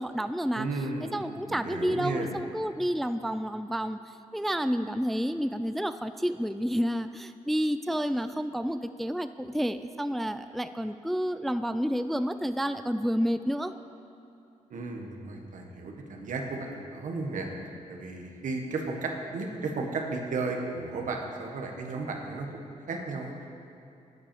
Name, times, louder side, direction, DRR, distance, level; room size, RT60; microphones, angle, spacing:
voice 1, 0.0-0.7 1.1-4.0 4.3-13.7, equal, ahead, 10 dB, 0.3 m, -30 dB
voice 2, 0.5-2.3 14.7-17.5 17.9-23.3, right 3 dB, 70° right, 1 dB, 1.4 m, -34 dB
8.8 x 8.2 x 7.0 m, 2.8 s
cardioid pair, 75°, 14 cm